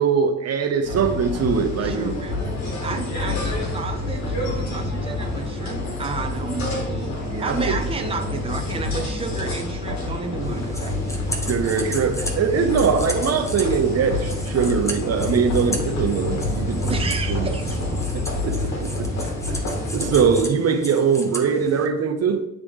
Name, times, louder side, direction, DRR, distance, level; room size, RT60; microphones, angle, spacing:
voice 1, 0.0-2.3 7.3-7.8 11.4-17.0 17.3-17.5 18.1-19.1 19.9-22.5, right 6 dB, 55° right, 0.9 m, -22 dB
sound 1, 0.8-20.4, left 2 dB, 65° left, 1.9 m, -27 dB
voice 2, 1.8-2.5 2.8-10.9 16.9-17.8, right 4 dB, 20° right, 0.8 m, -31 dB
sound 2, 10.4-21.9, equal, 10° left, 1.2 m, -35 dB
9.9 x 3.3 x 3.6 m
cardioid pair, 90°, 30 cm